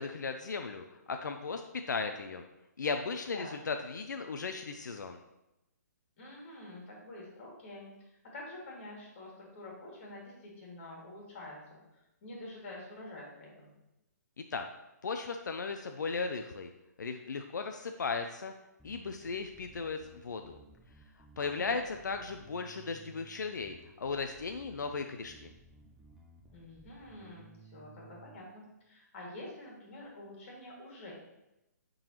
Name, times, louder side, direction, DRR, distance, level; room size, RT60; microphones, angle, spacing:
voice 1, 0.0-1.6 1.9-2.4 2.8-5.2 14.5-14.6 15.0-16.7 17.0-18.5 18.8-20.6 21.4-25.5, left 4 dB, 90° left, 6 dB, 0.5 m, -36 dB
voice 2, 6.2-7.9 8.3-13.7 21.4-21.8 26.5-31.1, left 1 dB, 40° left, -3 dB, 2.3 m, -47 dB
Bass guitar, 18.8-28.4, right 2 dB, ahead, 0.5 m, -58 dB
8.8 x 3.8 x 3.0 m, 0.92 s
hypercardioid pair, 155°, 10 cm